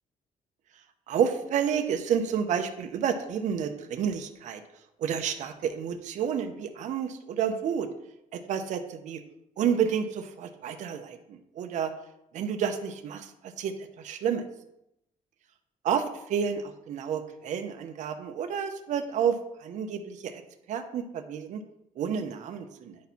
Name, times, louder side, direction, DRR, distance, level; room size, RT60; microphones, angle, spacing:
voice 1, 1.1-4.6 5.0-7.9 8.3-9.2 9.6-11.9 12.3-14.4 15.8-20.4 20.7-21.6 22.0-23.0, right 7 dB, 55° right, 7 dB, 0.6 m, -30 dB
9.3 x 4.2 x 4.2 m, 0.84 s
cardioid pair, 165°, 14 cm